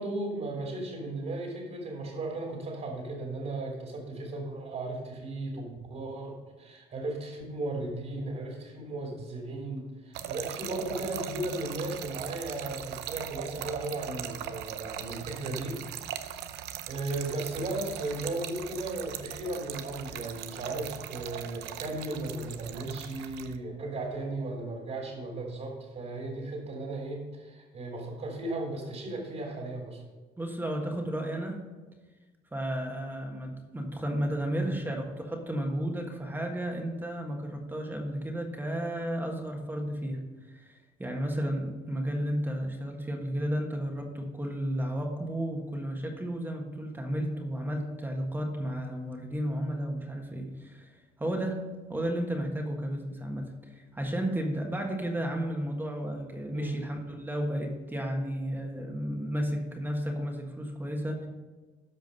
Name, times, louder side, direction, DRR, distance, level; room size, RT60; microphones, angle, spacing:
voice 1, 0.0-16.4 16.9-30.0 34.5-34.7 56.5-56.7, right 2 dB, 45° right, -1 dB, 2.8 m, -36 dB
Trickle dribble / Fill (with liquid), 10.1-23.6, right 11 dB, 85° right, 0.7 m, -40 dB
voice 2, 30.4-31.6 32.5-40.2 40.5-51.6 51.9-61.3, equal, 10° right, 2 dB, 1.6 m, -33 dB
13.0 x 5.2 x 5.4 m, 1.3 s
cardioid pair, 110°, 17 cm